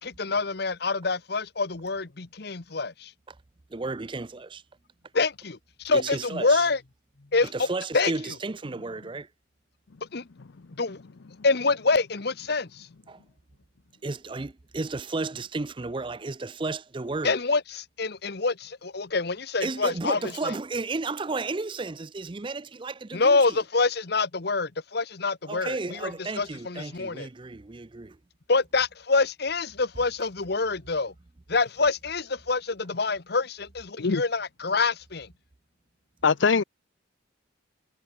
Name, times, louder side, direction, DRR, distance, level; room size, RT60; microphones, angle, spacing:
voice 1, 0.0-3.1 5.1-6.8 7.3-7.7 7.9-8.1 10.1-10.3 10.8-11.0 11.4-12.9 17.2-20.5 23.1-27.3 28.5-31.1 31.5-35.3, left 4 dB, 55° left, 1.1 m, -26 dB
voice 2, 3.7-4.6 5.9-6.7 7.5-9.3 13.1-13.2 14.0-17.4 19.6-23.6 25.5-28.2, right 3 dB, 25° right, 0.5 m, -33 dB
voice 3, 36.2-36.6, left 5 dB, 75° left, 0.6 m, -21 dB
head